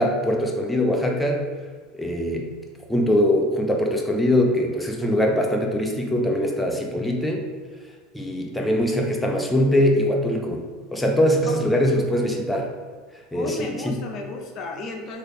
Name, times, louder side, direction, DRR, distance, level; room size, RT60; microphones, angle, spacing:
voice 1, 0.0-1.5 1.9-2.5 2.9-7.5 8.1-10.6 10.9-12.7 13.3-14.0, equal, 5° left, 1 dB, 0.6 m, -22 dB
voice 2, 11.5-12.3 13.3-15.2, left 3 dB, 50° left, 2 dB, 0.6 m, -35 dB
3.2 x 2.8 x 4.1 m, 1.5 s
hypercardioid pair, 85°, 0 cm